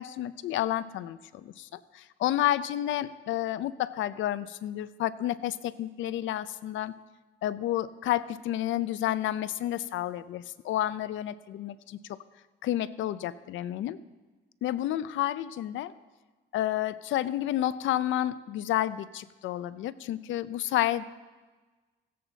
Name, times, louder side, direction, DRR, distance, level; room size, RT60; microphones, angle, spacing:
voice 1, 0.0-6.9 7.4-12.2 12.6-14.0 14.6-15.9 16.5-21.0, left 13 dB, 75° left, 16 dB, 0.5 m, -30 dB
16.0 x 7.6 x 3.9 m, 1.3 s
cardioid pair, 90°, 20 cm